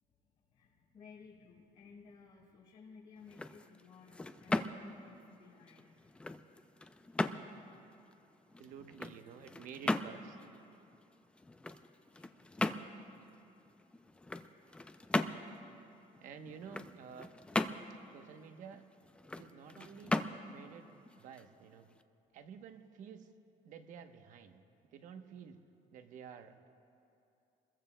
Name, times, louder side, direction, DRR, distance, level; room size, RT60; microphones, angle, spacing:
voice 1, 0.5-6.0 12.1-12.4 14.4-14.6, left 5 dB, 70° left, -9 dB, 3.5 m, -57 dB
sound 1, 3.2-22.0, left 2 dB, 5° left, 0.3 m, -39 dB
voice 2, 8.6-10.4 16.2-17.3 18.1-18.9 19.4-20.2 20.5-21.9 22.3-23.3 23.6-24.6 24.9-25.6 25.9-26.7, right 7 dB, 60° right, 7 dB, 1.0 m, -51 dB
28.5 x 21.5 x 2.2 m, 2.7 s
cardioid pair, 175°, 15 cm